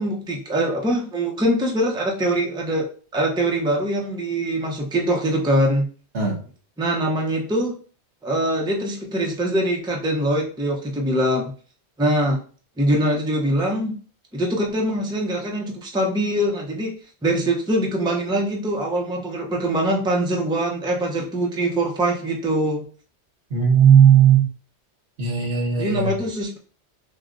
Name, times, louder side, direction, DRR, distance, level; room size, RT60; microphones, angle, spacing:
voice 1, 0.0-2.9 3.1-5.9 6.8-7.7 8.2-11.5 12.0-12.4 12.8-13.9 14.3-16.9 17.2-22.8 25.8-26.6, right 1 dB, 5° right, -1 dB, 0.6 m, -23 dB
voice 2, 23.5-24.4 25.2-26.1, right 8 dB, 75° right, 0 dB, 1.4 m, -15 dB
6.3 x 2.2 x 2.6 m, 0.40 s
omnidirectional pair, 1.2 m